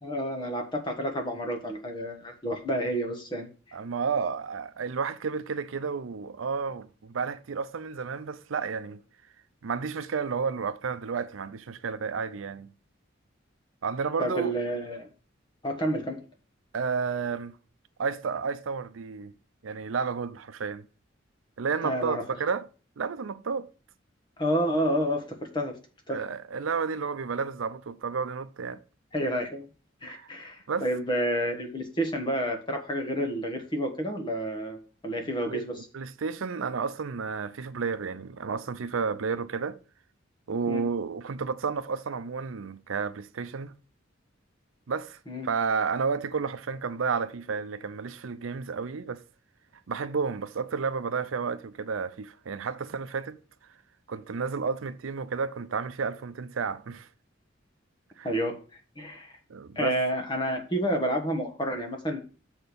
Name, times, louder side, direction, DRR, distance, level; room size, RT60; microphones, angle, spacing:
voice 1, 0.0-3.5 14.2-15.1 15.6-16.2 21.8-22.2 24.4-25.7 26.1-26.2 29.1-29.7 30.0-35.9 40.7-40.8 45.3-45.5 58.2-58.6 59.0-59.4 59.7-62.2, equal, 25° left, 1.4 m, -29 dB
voice 2, 3.7-9.0 9.6-12.7 13.8-14.5 16.7-17.6 18.0-19.3 19.6-20.8 21.6-22.6 23.0-23.7 26.1-28.8 30.1-30.3 30.7-30.8 35.5-39.8 40.5-43.7 44.9-45.2 45.4-49.2 49.9-53.4 54.1-57.1 58.2-58.3 59.5-60.0, right 5 dB, 85° right, 0.5 m, -31 dB
6.6 x 4.4 x 6.7 m
head